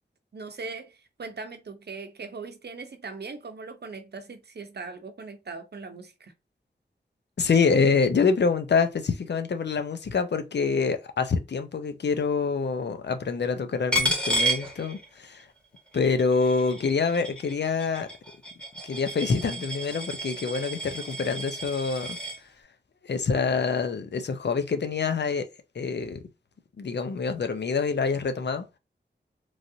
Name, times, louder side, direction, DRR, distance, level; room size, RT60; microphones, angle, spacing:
voice 1, 0.3-6.3, right 4 dB, 65° right, 0.7 m, -40 dB
voice 2, 7.4-15.4 15.9-18.1 18.9-22.2 23.0-25.5 25.8-26.2 26.8-28.6, left 5 dB, 70° left, 0.5 m, -26 dB
Coin (dropping), 13.9-15.4 15.8-22.4, right 1 dB, 5° left, 1.2 m, -31 dB
3.1 x 2.5 x 2.7 m
wide cardioid pair, 70°, 19 cm